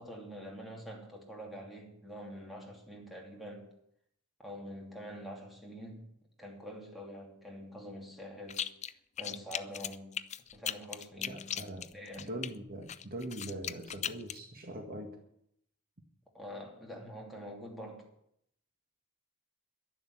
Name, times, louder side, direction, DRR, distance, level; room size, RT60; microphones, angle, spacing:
voice 1, 0.0-3.7 4.4-6.1 6.4-8.7 9.2-10.2 10.5-11.5 11.9-12.4 16.3-18.1, equal, ahead, 2.9 m, -46 dB
sound 1, 8.5-8.9 9.2-12.5 12.9-14.4, left 10 dB, 30° left, 0.4 m, -38 dB
voice 2, 11.2-11.8 12.2-15.2, right 1 dB, 45° right, 1.7 m, -42 dB
11.0 x 11.0 x 7.8 m
head